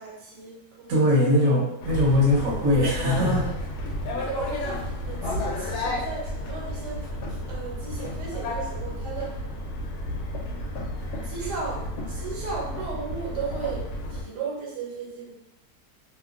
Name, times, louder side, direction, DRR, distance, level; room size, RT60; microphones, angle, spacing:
voice 1, 0.0-1.4 4.1-9.4 11.2-15.3, right 5 dB, 80° right, -3 dB, 1.4 m, -36 dB
voice 2, 0.9-3.5, left 1 dB, 60° right, -4 dB, 1.0 m, -21 dB
sound 1, 1.8-14.2, left 1 dB, 75° left, 1.1 m, -32 dB
2.9 x 2.2 x 2.4 m, 0.92 s
omnidirectional pair, 1.8 m